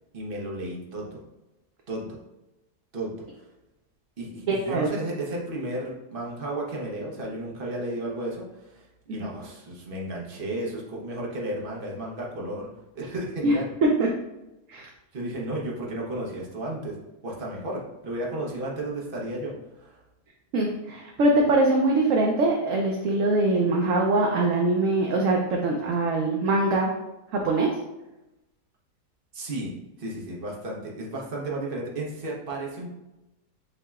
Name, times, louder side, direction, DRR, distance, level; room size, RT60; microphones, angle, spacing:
voice 1, 0.1-1.2 1.9-2.2 2.9-3.4 4.2-12.7 12.9-13.7 15.1-17.0 17.2-20.0 29.3-29.7 30.0-32.9, right 1 dB, 40° right, -3 dB, 1.0 m, -33 dB
voice 2, 4.5-4.9 13.4-13.5 13.8-14.1 14.7-14.9 20.5-26.9 27.3-27.7, right 2 dB, 65° right, 0 dB, 0.9 m, -23 dB
7.7 x 2.8 x 2.4 m, 0.98 s
omnidirectional pair, 1.7 m